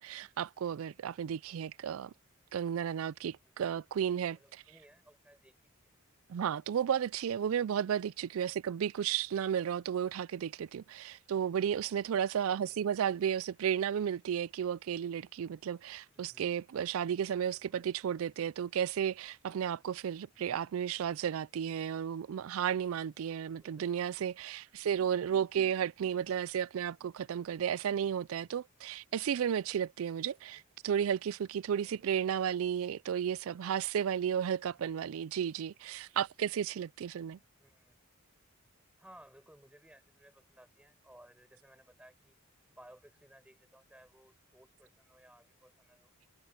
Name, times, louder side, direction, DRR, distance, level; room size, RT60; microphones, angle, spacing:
voice 1, 0.0-2.1 2.5-4.6 6.3-37.4, right 8 dB, 70° right, 0.3 m, -33 dB
voice 2, 1.8-2.2 3.4-4.0 4.3-5.9 12.4-12.8 16.1-16.5 17.5-17.9 23.4-24.1 30.3-30.6 31.8-32.3 34.6-34.9 37.6-38.0 39.0-42.4 42.7-46.1, right 1 dB, 5° right, 6.7 m, -60 dB
head